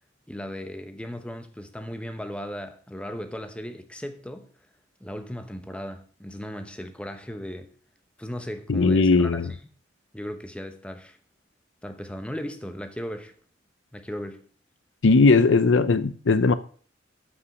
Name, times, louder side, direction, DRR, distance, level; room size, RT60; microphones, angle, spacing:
voice 1, 0.3-4.5 5.0-7.7 8.2-9.5 10.1-11.2 11.8-13.3 13.9-14.5, equal, 5° left, 0.9 m, -36 dB
voice 2, 8.7-9.5 15.0-16.5, left 3 dB, 75° left, 0.6 m, -18 dB
13.0 x 5.7 x 4.9 m
head